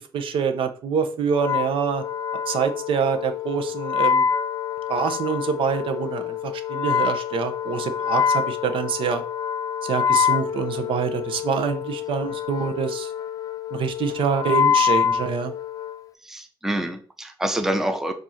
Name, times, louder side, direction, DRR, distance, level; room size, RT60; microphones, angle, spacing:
voice 1, 0.1-2.0 2.5-4.2 4.9-9.2 9.8-13.1 13.7-15.5, right 7 dB, 70° right, 7 dB, 0.8 m, -25 dB
Wind instrument woodwind instrument, 1.3-16.0, left 8 dB, 40° left, 0.4 m, -26 dB
voice 2, 16.2-18.1, right 1 dB, 5° right, 6 dB, 0.6 m, -26 dB
7.6 x 2.7 x 5.7 m, 0.42 s
wide cardioid pair, 170°, 9 cm